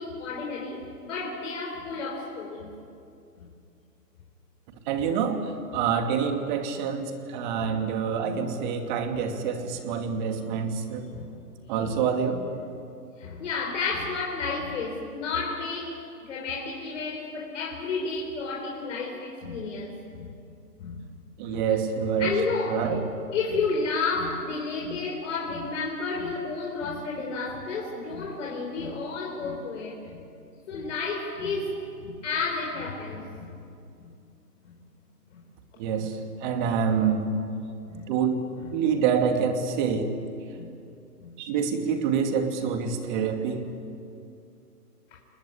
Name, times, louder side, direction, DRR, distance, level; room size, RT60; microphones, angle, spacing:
voice 1, 0.0-2.7 3.4-3.5 7.6-7.7 11.1-11.2 11.8-11.9 13.2-20.3 20.8-21.0 21.5-21.6 22.2-23.0 23.3-30.2 30.7-33.5 34.6-34.7 35.3-35.4 36.0-36.1 37.9-38.0 40.5-40.7 41.2-41.3 45.1-45.2, left 4 dB, 50° left, -1 dB, 4.7 m, -31 dB
voice 2, 4.9-11.1 11.7-12.4 21.4-22.3 22.7-23.0 35.8-37.2 38.1-38.4 38.7-40.1 41.4-43.6, right 6 dB, 30° right, 5 dB, 2.5 m, -26 dB
30.0 x 20.0 x 10.0 m, 2.5 s
hypercardioid pair, 155°, 48 cm